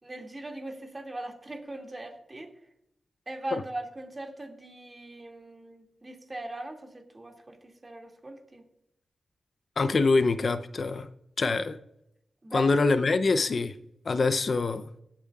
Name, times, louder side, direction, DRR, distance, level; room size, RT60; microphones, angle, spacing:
voice 1, 0.0-2.5 3.3-8.6 12.4-12.7, right 2 dB, 30° right, 2 dB, 2.3 m, -40 dB
voice 2, 9.8-11.1 11.4-11.8 12.5-13.7 14.1-14.8, left 3 dB, 60° left, 10 dB, 0.6 m, -24 dB
20.0 x 8.7 x 2.4 m, 0.80 s
cardioid pair, 60°, 0 cm